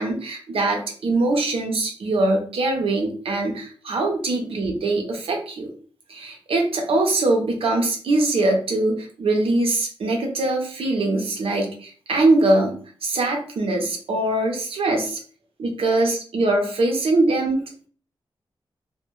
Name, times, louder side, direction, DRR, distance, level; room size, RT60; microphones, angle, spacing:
voice 1, 0.0-5.7 6.1-15.2 15.6-17.9, right 2 dB, 90° right, 1 dB, 0.6 m, -22 dB
2.1 x 2.1 x 3.0 m, 0.43 s
wide cardioid pair, 140°, 9 cm